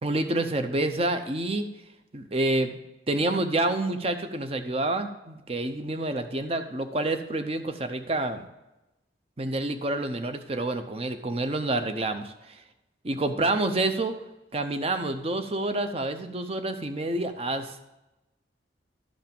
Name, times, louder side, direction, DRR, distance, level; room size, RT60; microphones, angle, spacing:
voice 1, 0.0-1.7 2.1-2.8 3.1-8.4 9.4-12.6 13.0-14.2 14.5-17.9, right 2 dB, 35° right, 8 dB, 0.7 m, -28 dB
12.5 x 5.3 x 5.3 m, 0.96 s
head